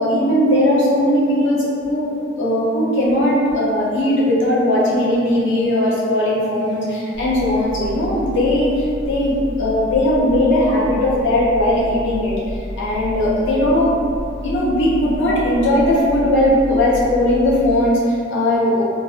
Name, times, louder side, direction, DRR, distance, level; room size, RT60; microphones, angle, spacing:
voice 1, 0.0-14.0 14.4-18.8, left 1 dB, 70° left, -7 dB, 0.6 m, -18 dB
sound 1, 7.1-17.9, equal, 30° right, 0.4 m, -31 dB
2.5 x 2.0 x 2.4 m, 2.3 s
head